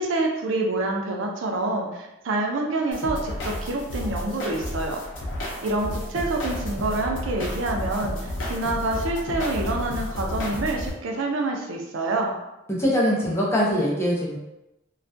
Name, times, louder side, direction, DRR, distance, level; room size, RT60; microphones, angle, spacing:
voice 1, 0.0-5.0 5.6-12.3, right 2 dB, 75° right, 1 dB, 0.4 m, -27 dB
sound 1, 2.9-10.9, left 1 dB, 70° left, 0.6 m, -31 dB
voice 2, 12.8-14.4, equal, 15° left, -5 dB, 0.5 m, -22 dB
2.3 x 2.1 x 2.5 m, 0.92 s
head